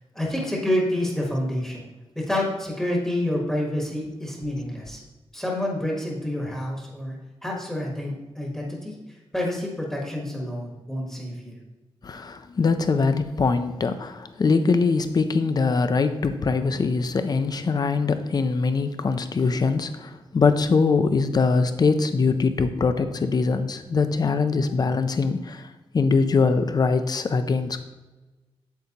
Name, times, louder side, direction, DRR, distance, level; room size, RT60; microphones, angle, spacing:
voice 1, 0.1-1.9 2.1-5.0 5.3-7.2 7.4-9.0 9.3-11.6, left 1 dB, 5° left, -3 dB, 1.3 m, -28 dB
voice 2, 12.0-25.7 25.9-27.8, left 4 dB, 40° left, 9 dB, 0.5 m, -22 dB
8.1 x 8.0 x 2.9 m, 1.1 s
wide cardioid pair, 180°, 10 cm